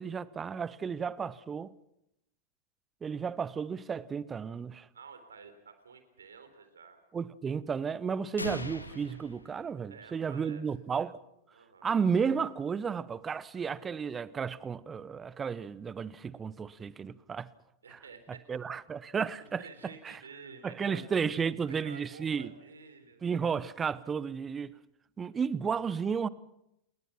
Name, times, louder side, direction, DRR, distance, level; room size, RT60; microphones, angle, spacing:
voice 1, 0.0-1.7 3.0-4.9 7.1-11.2 11.8-17.5 17.9-18.0 18.5-19.6 20.0-20.2 20.6-22.5 23.2-24.7 25.2-26.3, right 6 dB, 20° right, 1.0 m, -33 dB
voice 2, 4.9-7.0 9.9-10.6 11.5-11.9 13.5-13.6 17.8-18.5 19.3-21.0 21.6-23.2, right 5 dB, 70° right, 3.8 m, -51 dB
sound 1, 8.4-10.3, left 2 dB, 80° left, 2.0 m, -41 dB
29.0 x 21.0 x 6.0 m
figure-of-eight pair, 90°, 0 cm